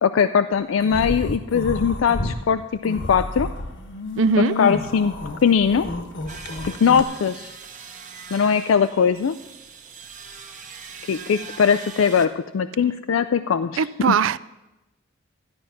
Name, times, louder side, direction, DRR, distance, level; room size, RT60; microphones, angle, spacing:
voice 1, 0.0-3.5 4.6-5.1 5.4-5.9 6.6-7.5 8.3-9.4 11.1-14.1, left 6 dB, 80° left, 0.4 m, -20 dB
sound 1, 0.8-2.4 2.8-7.0, left 2 dB, 65° left, 1.2 m, -30 dB
voice 2, 4.2-4.6 13.8-14.4, right 7 dB, 75° right, 0.4 m, -20 dB
sound 2, 6.3-12.3, right 6 dB, 40° right, 0.9 m, -41 dB
13.0 x 9.6 x 5.8 m
head